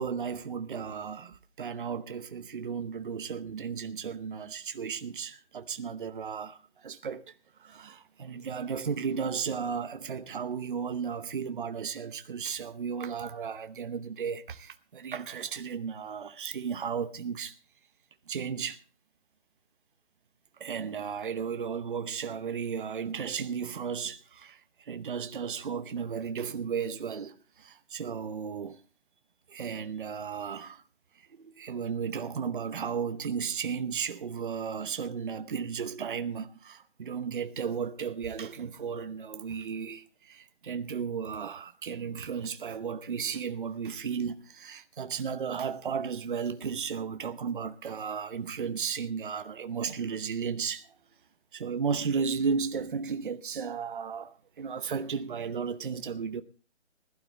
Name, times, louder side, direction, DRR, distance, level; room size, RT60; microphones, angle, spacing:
voice 1, 0.0-7.3 7.6-17.6 18.3-18.8 20.6-28.8 29.5-30.8 31.3-50.9 51.5-56.4, right 6 dB, 45° right, 0.9 m, -34 dB
20.5 x 12.0 x 3.3 m
hypercardioid pair, 170°, 35 cm